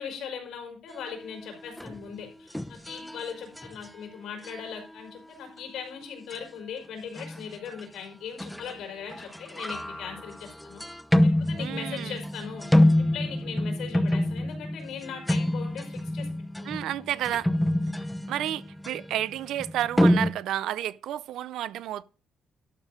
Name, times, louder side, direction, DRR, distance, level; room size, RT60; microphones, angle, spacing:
voice 1, 0.0-10.8 11.2-12.7 13.0-16.3 16.6-16.9 17.7-18.0, left 7 dB, 80° left, 4.6 m, -39 dB
sound 1, 1.8-2.1 2.5-4.0 4.4-4.7 6.3-6.4 7.2-7.8 8.4-8.8 9.1-20.3, left 1 dB, 5° left, 0.8 m, -27 dB
voice 2, 11.6-12.2 16.6-17.5 18.3-22.0, right 12 dB, 80° right, 0.4 m, -31 dB
12.0 x 4.2 x 7.4 m
cardioid pair, 90°, 0 cm